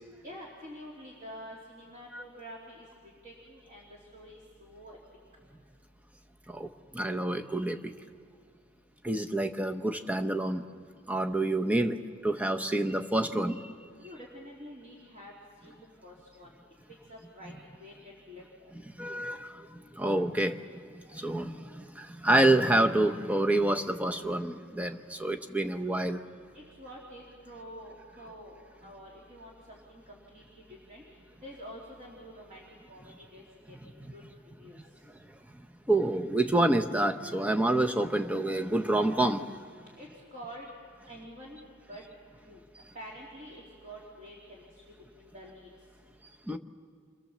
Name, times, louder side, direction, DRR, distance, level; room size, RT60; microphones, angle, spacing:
voice 1, 0.2-2.9 3.2-5.0 14.0-15.3 15.6-16.5 17.1-17.5 17.8-18.4 26.5-31.0 31.4-32.6 32.9-33.4 33.9-34.2 34.6-34.8 40.0-40.7 41.1-41.6 41.9-42.0 42.4-42.6 42.9-44.8 45.1-45.7, equal, 35° right, -4 dB, 3.1 m, -47 dB
voice 2, 6.9-7.9 9.0-10.6 11.1-12.0 12.2-13.7 19.0-19.7 19.9-20.6 21.1-26.2 33.8-34.1 35.9-39.4 46.5-46.6, right 1 dB, 5° right, 5 dB, 0.8 m, -27 dB
28.0 x 23.0 x 7.4 m, 2.2 s
head